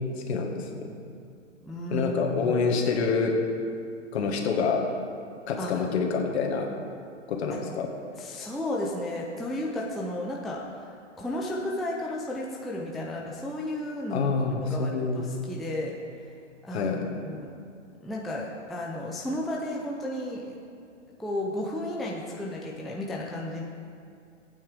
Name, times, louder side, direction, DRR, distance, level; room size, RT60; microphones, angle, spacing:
voice 1, 0.2-0.9 1.9-3.4 4.1-4.8 5.5-6.7 7.3-7.9 14.1-15.3 16.7-17.0, left 5 dB, 60° left, 2 dB, 1.8 m, -27 dB
voice 2, 1.6-2.1 2.4-2.6 5.6-5.9 7.5-7.6 8.1-10.9 11.2-14.3 14.6-15.9 16.6-16.9 17.2-17.5 18.0-20.6 21.2-23.6, left 1 dB, ahead, -3 dB, 0.5 m, -33 dB
16.0 x 8.9 x 3.6 m, 2.4 s
hypercardioid pair, 125°, 37 cm